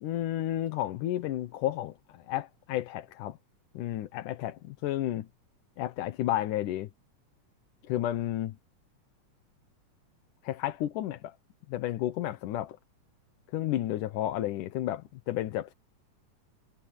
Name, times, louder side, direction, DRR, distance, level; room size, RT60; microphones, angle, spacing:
voice 1, 0.0-3.4 3.7-5.3 5.8-6.9 7.9-8.6 10.4-11.3 11.7-12.8 13.5-15.7, left 13 dB, 90° left, 2.6 m, -32 dB
omnidirectional pair, 3.5 m